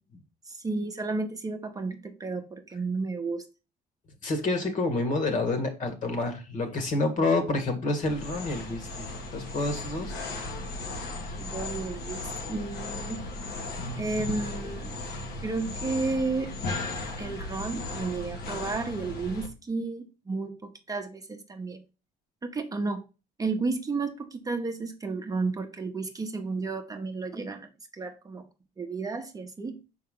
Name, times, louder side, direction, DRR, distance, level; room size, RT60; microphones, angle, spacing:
voice 1, 0.5-3.4 11.4-12.2 12.5-13.3 14.0-15.0 15.4-16.5 17.2-21.8 22.4-23.0 23.4-28.4 28.8-29.8, right 3 dB, 20° right, 5 dB, 0.7 m, -32 dB
voice 2, 4.2-10.2, left 2 dB, 50° left, 6 dB, 1.7 m, -28 dB
sound 1, 8.0-19.5, left 2 dB, 70° left, 1.4 m, -36 dB
5.7 x 4.7 x 3.7 m, 0.31 s
cardioid pair, 110°, 17 cm